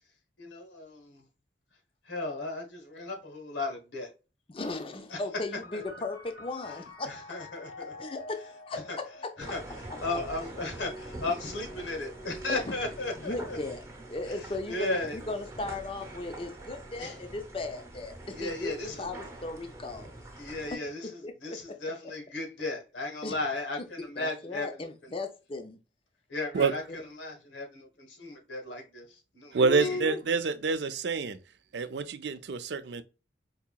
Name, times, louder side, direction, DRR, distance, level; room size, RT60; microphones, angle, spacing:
voice 1, 0.4-1.2 2.1-4.1 5.1-5.2 5.7-5.8 7.0-7.9 8.9-9.0 9.4-9.6 10.0-13.6 14.3-15.2 17.0-17.2 18.3-19.0 20.4-25.1 26.3-26.8 27.2-29.1 29.3-30.0, left 2 dB, 90° left, 1.4 m, -35 dB
voice 2, 4.5-7.2 8.0-8.8 12.5-12.7 13.2-13.8 14.1-20.2 20.7-21.8 23.2-23.4 24.0-25.8 26.9-27.0 29.6-30.2, left 2 dB, 30° left, 0.5 m, -37 dB
sound 1, 5.4-18.6 19.5-20.2, left 1 dB, 55° left, 0.9 m, -49 dB
sound 2, 9.4-20.7, right 1 dB, 15° right, 0.8 m, -45 dB
voice 3, 29.5-31.4 31.7-33.0, right 4 dB, 70° right, 0.4 m, -27 dB
4.7 x 2.8 x 2.3 m
head